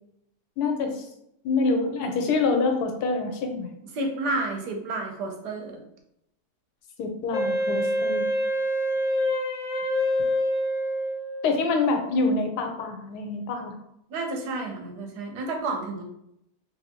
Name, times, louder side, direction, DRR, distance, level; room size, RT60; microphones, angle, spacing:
voice 1, 0.6-1.1 1.4-3.7 7.0-8.3 11.4-13.8, left 3 dB, 80° left, 4 dB, 1.1 m, -26 dB
voice 2, 3.9-5.8 14.1-16.0, right 2 dB, 85° right, 3 dB, 1.3 m, -30 dB
Wind instrument woodwind instrument, 7.3-11.6, equal, 60° left, 0.9 m, -26 dB
3.3 x 2.7 x 2.8 m, 0.78 s
omnidirectional pair, 1.7 m